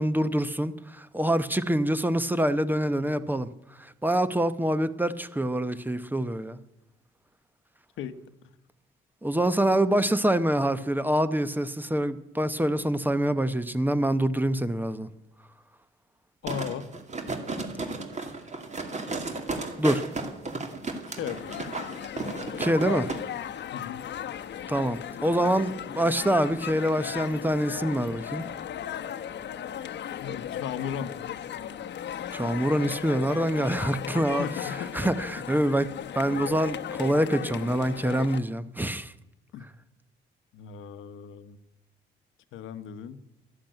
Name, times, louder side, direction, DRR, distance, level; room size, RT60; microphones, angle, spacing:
voice 1, 0.0-6.6 9.2-15.1 19.8-20.0 22.6-23.1 24.7-28.5 32.3-39.1, right 1 dB, 10° right, 0.8 m, -26 dB
voice 2, 16.4-16.9 21.2-21.4 23.7-24.1 30.2-31.1 34.4-34.9 39.5-39.7 40.5-41.6 42.5-43.2, left 8 dB, 85° left, 1.0 m, -36 dB
sound 1, 16.5-23.2 23.6-23.7, right 3 dB, 35° right, 2.4 m, -34 dB
sound 2, 21.3-38.4, left 9 dB, 60° left, 1.0 m, -36 dB
12.0 x 11.5 x 9.0 m
cardioid pair, 90°, 20 cm